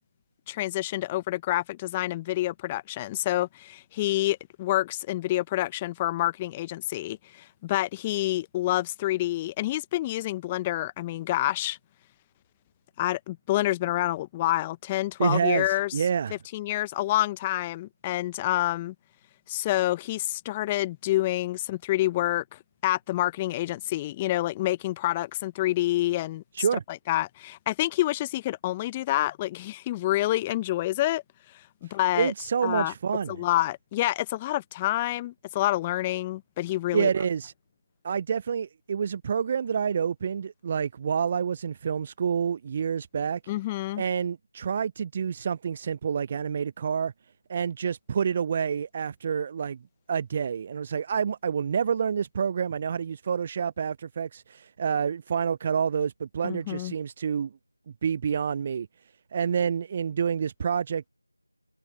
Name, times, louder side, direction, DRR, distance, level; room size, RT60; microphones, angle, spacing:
voice 1, 0.5-11.8 13.0-15.9 16.5-18.9 19.5-26.4 27.1-31.2 31.8-32.3 32.6-32.9 33.3-37.1 43.5-44.0 56.4-56.9, left 16 dB, 10° left, 0.7 m, -28 dB
voice 2, 15.2-16.4 26.5-26.8 32.2-33.4 36.9-37.5 38.0-43.4 44.0-47.1 47.5-49.8 50.1-57.5 58.0-58.9 59.3-61.1, right 7 dB, 20° right, 0.4 m, -28 dB
figure-of-eight pair, 170°, 0 cm